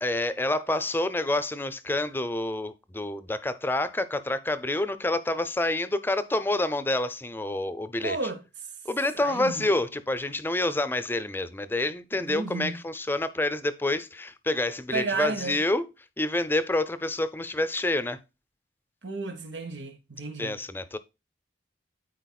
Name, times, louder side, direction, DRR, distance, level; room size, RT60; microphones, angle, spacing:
voice 1, 0.0-8.2 8.9-15.8 16.2-18.2 20.4-21.0, left 2 dB, 10° left, 0.6 m, -28 dB
voice 2, 8.0-8.4 9.1-9.6 12.1-12.8 14.9-15.6 19.0-20.6, right 3 dB, 80° right, 1.6 m, -32 dB
13.5 x 4.5 x 2.3 m
head